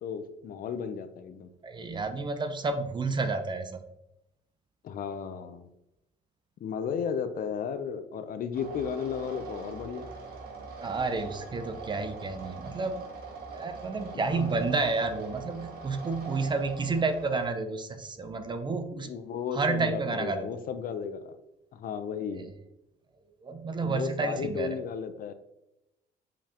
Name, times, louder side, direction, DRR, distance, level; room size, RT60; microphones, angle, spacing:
voice 1, 0.0-1.5 4.8-5.7 6.6-10.1 14.1-14.6 18.9-21.4 21.7-22.5 23.8-25.3, left 7 dB, 55° left, 9 dB, 0.7 m, -34 dB
voice 2, 1.6-3.8 10.8-13.0 13.5-19.1 19.5-20.5 22.3-22.5 23.4-24.7, right 3 dB, 25° right, 8 dB, 0.7 m, -30 dB
sound 1, 8.5-17.5, right 4 dB, 65° right, 1.6 m, -43 dB
7.1 x 5.4 x 3.0 m, 0.89 s
cardioid pair, 110°, 17 cm